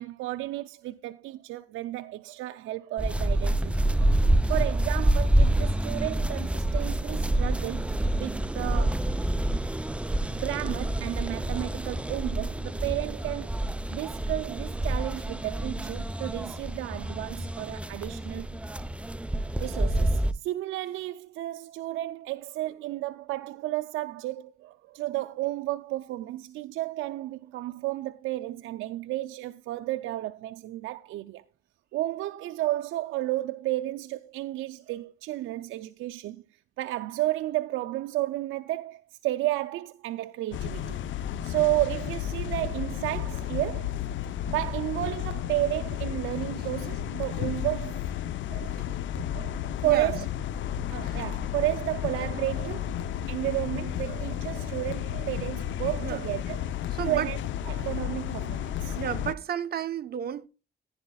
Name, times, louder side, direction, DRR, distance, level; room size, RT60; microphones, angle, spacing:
voice 1, 0.0-4.1 4.5-9.1 10.3-18.6 19.6-31.4 31.9-36.4 36.8-41.0 41.4-43.9 44.5-48.0 48.5-48.7 49.3-49.6 49.8-50.3 50.9-53.0 53.3-56.7 57.1-57.4 57.7-59.0, right 16 dB, 85° right, 0.5 m, -32 dB
sound 1, 3.0-20.3, right 1 dB, 5° right, 0.5 m, -27 dB
sound 2, 40.5-59.3, left 10 dB, 70° left, 0.7 m, -33 dB
voice 2, 49.8-50.2 50.7-51.2 53.0-53.1 56.0-56.2 56.9-57.3 58.9-60.5, right 9 dB, 50° right, 0.9 m, -33 dB
15.5 x 10.5 x 2.3 m
cardioid pair, 90°, 20 cm